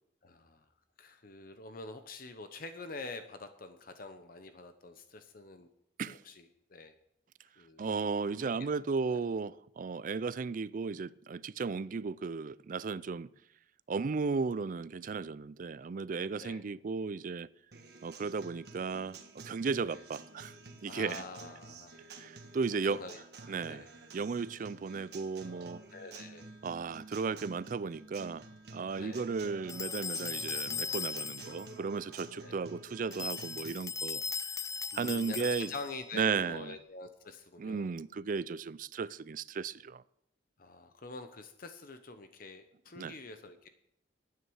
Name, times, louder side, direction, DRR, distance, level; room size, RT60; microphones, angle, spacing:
voice 1, 0.2-0.6 1.0-5.7 6.1-6.9 7.6-7.9 9.1-9.3 16.3-16.6 19.8-20.0 20.8-22.4 22.7-23.2 23.6-23.9 25.9-26.5 29.0-29.3 32.4-32.6 34.9-37.9 40.6-43.7, left 3 dB, 55° left, 0.8 m, -46 dB
voice 2, 7.8-13.3 13.9-17.5 18.0-20.6 20.8-21.2 22.1-23.0 23.5-23.8 24.1-25.8 26.6-34.6 34.9-35.7 36.1-36.8 37.6-40.0 43.0-43.2, right 5 dB, 50° right, 0.4 m, -35 dB
Acoustic guitar, 17.7-33.7, right 3 dB, 65° right, 1.5 m, -51 dB
sound 1, 29.7-31.7 33.1-36.0, left 5 dB, 20° left, 0.4 m, -38 dB
11.0 x 9.4 x 6.3 m
head